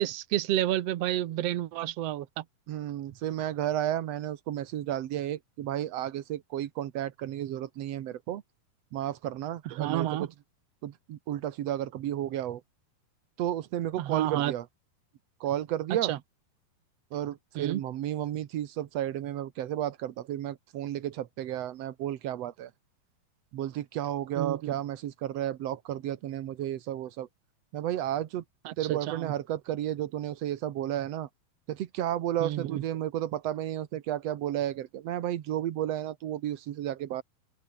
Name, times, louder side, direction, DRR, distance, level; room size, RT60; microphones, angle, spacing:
voice 1, 0.0-2.4 9.6-10.3 14.0-14.5 16.0-16.2 17.6-17.8 24.4-24.8 28.6-29.3 32.4-32.8, right 13 dB, 80° right, 1.4 m, -30 dB
voice 2, 2.7-8.4 8.9-10.3 10.8-12.6 13.4-14.7 15.4-16.1 17.1-22.7 23.5-27.3 27.7-28.4 28.8-31.3 31.7-37.2, right 12 dB, 65° right, 1.7 m, -32 dB
open air
omnidirectional pair, 4.3 m